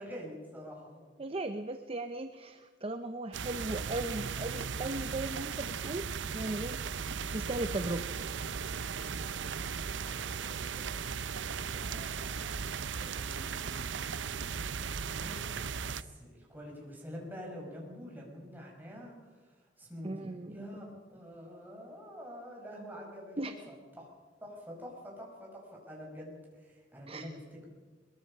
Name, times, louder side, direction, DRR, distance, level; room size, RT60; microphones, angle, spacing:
voice 1, 0.0-1.0 9.5-10.9 11.5-13.9 14.8-20.9 21.1-23.4 23.7-24.1 24.4-27.7, equal, 10° right, -2 dB, 6.0 m, -47 dB
voice 2, 1.2-6.1 6.3-6.8 7.3-8.1 20.0-20.5 23.4-23.5 27.1-27.3, right 2 dB, 30° right, 9 dB, 0.7 m, -37 dB
sound 1, 3.3-16.0, right 6 dB, 70° right, 0.7 m, -37 dB
22.5 x 22.0 x 5.6 m, 1.4 s
head